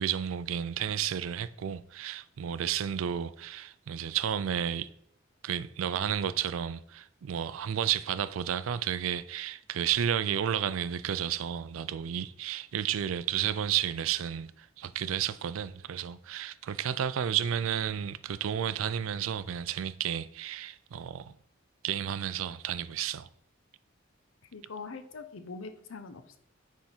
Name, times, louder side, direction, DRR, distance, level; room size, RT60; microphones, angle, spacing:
voice 1, 0.0-4.9 5.4-21.3 21.8-23.3, right 9 dB, 80° right, 0.4 m, -32 dB
voice 2, 24.5-26.4, left 4 dB, 80° left, 0.7 m, -43 dB
9.5 x 3.5 x 4.4 m
head